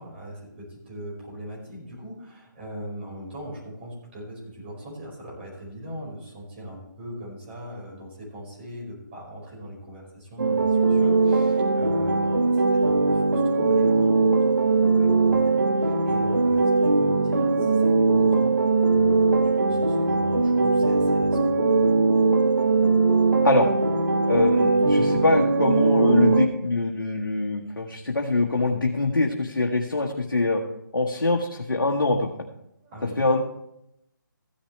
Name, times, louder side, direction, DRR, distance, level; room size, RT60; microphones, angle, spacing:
voice 1, 0.0-18.6 18.8-21.8 32.8-33.2, equal, 30° right, -4 dB, 5.0 m, -40 dB
sound 1, 10.4-26.5, right 3 dB, 65° right, 1.4 m, -20 dB
voice 2, 24.3-30.6 30.9-32.3 33.2-33.4, left 2 dB, 80° left, 0 dB, 1.4 m, -23 dB
14.5 x 10.0 x 3.3 m, 0.83 s
figure-of-eight pair, 155°, 11 cm